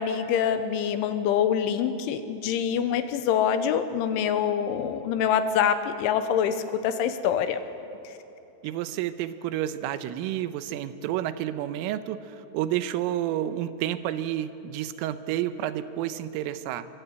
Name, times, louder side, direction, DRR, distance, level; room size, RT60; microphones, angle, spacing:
voice 1, 0.0-6.6 6.8-7.6, left 8 dB, 80° left, 10 dB, 3.1 m, -25 dB
voice 2, 8.6-16.9, right 12 dB, 80° right, 12 dB, 3.3 m, -30 dB
25.0 x 22.5 x 8.0 m, 3.0 s
omnidirectional pair, 5.9 m